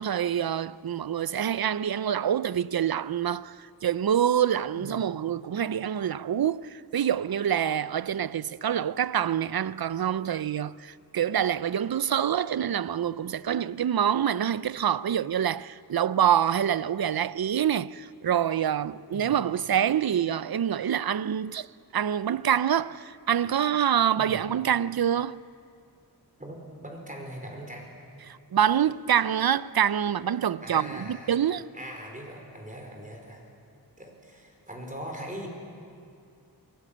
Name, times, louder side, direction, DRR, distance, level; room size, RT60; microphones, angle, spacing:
voice 1, 0.0-21.7 21.9-25.4 28.3-31.7, right 9 dB, 60° right, 0.6 m, -26 dB
voice 2, 26.4-27.9 30.6-31.4 31.7-33.4 34.0-35.5, equal, 20° right, 4.9 m, -41 dB
22.5 x 17.5 x 8.7 m
wide cardioid pair, 70°, 41 cm